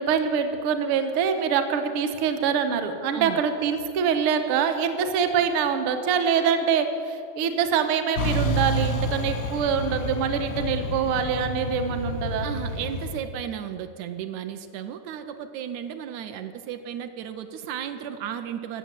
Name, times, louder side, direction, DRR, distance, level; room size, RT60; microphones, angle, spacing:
voice 1, 0.0-12.5, right 7 dB, 65° right, 7 dB, 1.4 m, -24 dB
Truck, 8.2-13.2, left 1 dB, 60° left, 0.8 m, -29 dB
voice 2, 12.4-18.8, right 9 dB, 80° right, 8 dB, 1.9 m, -34 dB
15.5 x 7.1 x 8.9 m, 2.6 s
omnidirectional pair, 3.4 m